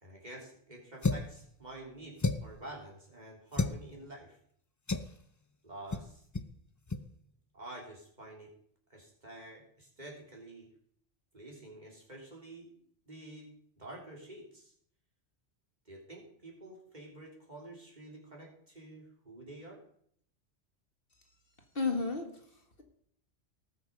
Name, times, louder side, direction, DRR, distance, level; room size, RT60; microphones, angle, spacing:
voice 1, 0.0-4.4 5.6-6.2 7.5-8.5 8.9-10.7 11.3-12.8 13.1-13.5 13.8-14.7 15.9-19.8, right 1 dB, 40° right, -2 dB, 3.4 m, -49 dB
sound 1, 1.0-1.4 2.2-2.6 3.5-3.8 4.9-5.1 5.9-6.1 6.3-6.5 6.9-7.0, left 3 dB, 25° left, 0.4 m, -31 dB
voice 2, 21.7-22.8, left 4 dB, 55° left, 4 dB, 1.8 m, -34 dB
19.0 x 6.6 x 5.2 m, 0.65 s
omnidirectional pair, 1.2 m